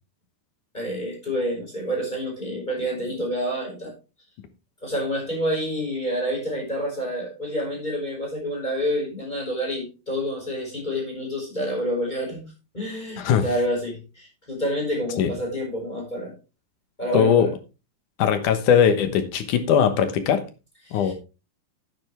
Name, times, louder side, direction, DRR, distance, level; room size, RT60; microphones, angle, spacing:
voice 1, 0.7-3.9 4.8-12.4 12.7-16.3 17.0-17.5 20.9-21.1, equal, 10° left, -2 dB, 5.1 m, -28 dB
voice 2, 17.1-17.5 18.2-20.4 20.9-21.1, left 8 dB, 65° left, 9 dB, 2.4 m, -20 dB
10.0 x 9.9 x 3.4 m, 0.30 s
omnidirectional pair, 4.3 m